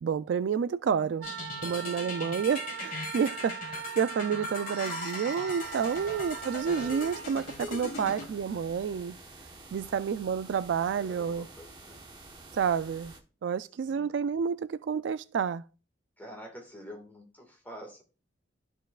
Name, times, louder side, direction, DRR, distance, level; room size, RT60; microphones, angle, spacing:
voice 1, 0.0-1.3 1.6-9.1 9.7-11.5 12.5-13.1 13.4-15.6, right 7 dB, 70° right, 0.3 m, -29 dB
sound 1, 1.2-8.2, left 3 dB, 45° left, 1.7 m, -39 dB
Wind instrument woodwind instrument, 1.2-7.3, right 9 dB, 85° right, 0.7 m, -41 dB
voice 2, 1.6-2.2 3.2-3.3 6.0-6.3 7.9-8.6 9.8-10.0 11.0-12.0 13.8-14.1 16.2-18.0, equal, 10° left, 1.7 m, -49 dB
sound 2, 5.6-13.2, right 2 dB, 25° right, 1.1 m, -50 dB
13.5 x 4.5 x 2.4 m
head